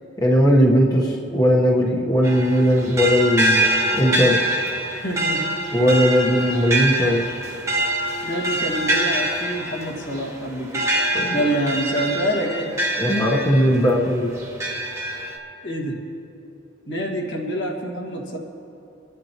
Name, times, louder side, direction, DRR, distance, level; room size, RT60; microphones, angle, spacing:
voice 1, 0.2-3.6 3.9-4.4 5.7-7.2 11.1-11.4 13.0-14.3, equal, 20° left, -2 dB, 1.1 m, -18 dB
sound 1, 2.2-13.9 14.4-15.4, right 1 dB, 15° right, 1.1 m, -25 dB
voice 2, 4.9-5.5 8.2-10.9 11.3-12.7 15.6-16.0 16.9-18.4, right 1 dB, 70° left, -1 dB, 1.7 m, -26 dB
28.0 x 10.5 x 2.9 m, 2.8 s
head